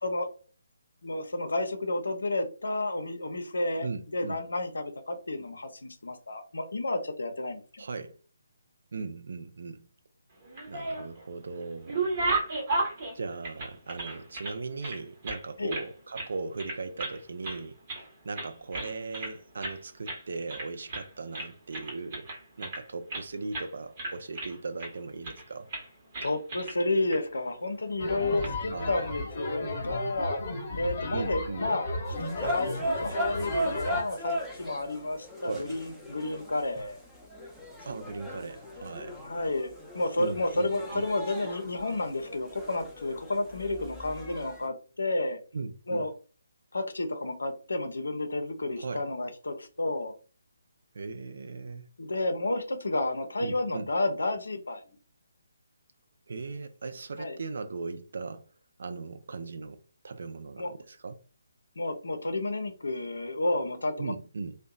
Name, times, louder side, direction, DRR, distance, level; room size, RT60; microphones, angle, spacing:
voice 1, 1.0-3.9 4.1-7.6 15.6-15.7 26.2-30.4 30.8-31.9 32.2-37.0 39.2-45.4 45.9-46.1 46.7-50.1 52.0-54.8 57.2-57.4 60.6-60.7 61.8-64.1, left 2 dB, 70° left, 0.5 m, -31 dB
voice 2, 3.8-4.4 7.8-8.2 8.9-9.9 10.7-12.2 13.1-22.3 22.6-25.7 28.7-29.1 31.1-31.7 35.4-35.8 37.8-39.2 40.2-41.1 45.5-46.1 48.8-49.1 50.9-51.8 53.4-53.9 56.3-58.5 58.8-61.1 64.0-64.6, right 4 dB, 55° right, 0.3 m, -38 dB
sound 1, 10.4-11.3 11.6-14.6 14.8-15.9 16.2-16.3 16.6-17.2 17.4-18.1 18.4-19.3 19.6-19.8 20.1-20.2 20.5-21.1 21.3-23.3 23.5-23.7 24.0-24.9 25.2-25.4 25.7-25.9 26.1-26.8 27.1-27.2 28.2-28.5, right 2 dB, 35° right, 0.9 m, -34 dB
sound 2, 28.0-34.0, left 2 dB, 35° left, 0.9 m, -35 dB
sound 3, 32.1-44.7, equal, 5° right, 0.5 m, -38 dB
2.6 x 2.1 x 2.3 m
figure-of-eight pair, 145°, 0 cm